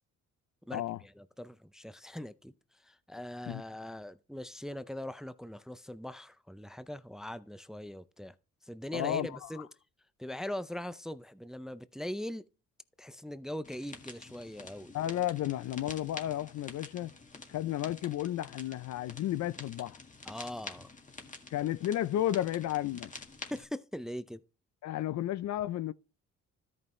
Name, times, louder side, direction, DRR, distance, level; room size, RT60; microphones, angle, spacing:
voice 1, 0.7-2.5 2.8-8.4 8.6-9.7 10.2-12.4 13.0-14.9 20.2-20.9 23.5-24.4, left 1 dB, ahead, 0.5 m, -41 dB
voice 2, 8.9-9.3 14.9-17.1 17.5-20.0 21.5-23.1 24.8-25.9, left 13 dB, 65° left, 0.5 m, -32 dB
sound 1, 13.6-23.6, left 3 dB, 25° left, 1.8 m, -48 dB
13.5 x 5.4 x 3.2 m
cardioid pair, 90°, 30 cm